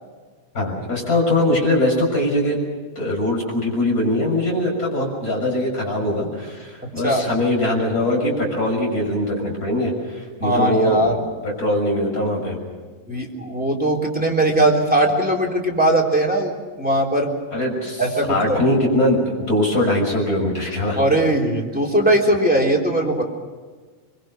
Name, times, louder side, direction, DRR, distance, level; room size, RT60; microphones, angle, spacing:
voice 1, 0.5-2.6 2.9-11.1 11.4-12.6 17.5-21.0, left 1 dB, 25° left, -1 dB, 6.8 m, -21 dB
voice 2, 10.4-11.2 13.1-17.3 18.0-18.6 21.0-23.2, right 1 dB, 5° right, -1 dB, 3.2 m, -19 dB
24.0 x 23.5 x 6.4 m, 1.5 s
omnidirectional pair, 3.6 m